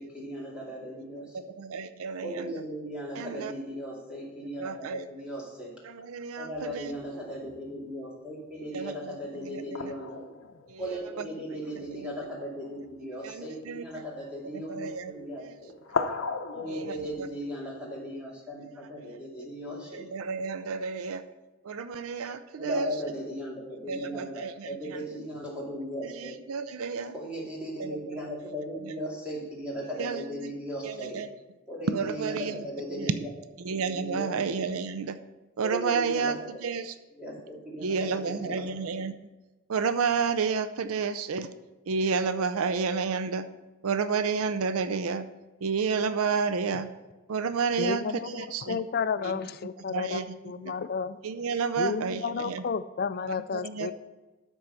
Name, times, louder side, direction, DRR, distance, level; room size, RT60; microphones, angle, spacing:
voice 1, 0.0-1.5 2.2-5.7 6.4-10.2 10.8-15.8 16.5-20.1 22.6-26.3 27.1-31.2 31.7-33.1 33.8-34.6 35.6-36.3 37.2-38.6, equal, 5° right, -4 dB, 2.3 m, -37 dB
voice 2, 1.3-2.6 3.1-3.5 4.3-5.1 5.8-6.9 8.7-9.9 10.7-11.3 11.8-12.1 13.2-14.0 14.5-15.6 16.7-17.3 18.7-19.1 19.9-21.2 21.6-23.0 23.9-25.1 26.0-27.1 27.8-28.2 28.8-28.9 29.9-30.5 30.8-31.3 31.9-32.7 32.9-33.1 33.6-35.2 35.6-37.0 37.8-39.1 39.7-41.5 41.9-43.5 43.8-45.3 45.6-46.9 47.3-48.8 49.2-49.3 49.8-50.4 50.7-50.8 51.2-52.6 53.3-53.9, right 5 dB, 85° right, 11 dB, 0.5 m, -31 dB
sound 1, 6.5-7.7 9.7-12.0 12.9-13.0 13.3-14.0 14.9-15.3 15.7-17.5, left 4 dB, 75° left, 0.8 m, -37 dB
voice 3, 47.8-51.2 51.8-53.9, left 5 dB, 45° left, 13 dB, 0.4 m, -32 dB
12.5 x 4.6 x 5.6 m, 1.2 s
head